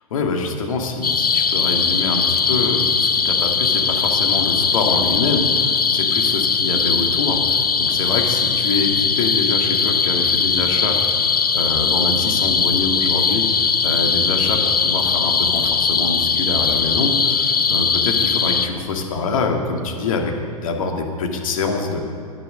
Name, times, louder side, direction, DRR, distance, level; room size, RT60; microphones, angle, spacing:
voice 1, 0.1-22.0, left 3 dB, 60° left, 2 dB, 2.0 m, -25 dB
sound 1, 1.0-18.7, left 5 dB, 80° left, 0.7 m, -19 dB
10.5 x 10.0 x 6.5 m, 2.6 s
figure-of-eight pair, 105°, 19 cm